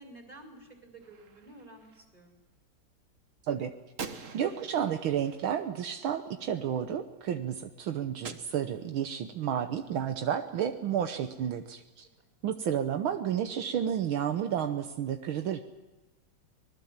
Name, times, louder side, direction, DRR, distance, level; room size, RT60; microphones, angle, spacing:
voice 1, 0.0-2.3, right 2 dB, 20° right, 2 dB, 4.7 m, -51 dB
Gunshot gunfire, 1.0-2.0 4.0-6.4 8.2-9.2, right 5 dB, 45° right, 1.4 m, -46 dB
voice 2, 4.3-12.1 12.4-15.6, right 9 dB, 75° right, 8 dB, 1.8 m, -31 dB
25.5 x 20.0 x 7.3 m, 1.2 s
omnidirectional pair, 2.3 m